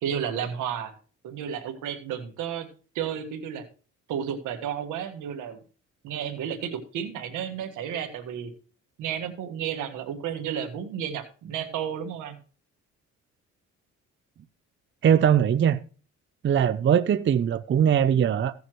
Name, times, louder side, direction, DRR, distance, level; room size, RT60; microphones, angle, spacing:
voice 1, 0.0-0.9 1.2-2.7 3.0-3.6 4.1-5.6 6.0-8.5 9.0-12.4, right 8 dB, 90° right, 1.6 m, -32 dB
voice 2, 15.0-15.8 16.4-18.5, right 9 dB, 40° right, 0.5 m, -21 dB
16.0 x 7.0 x 3.1 m
cardioid pair, 90°, 30 cm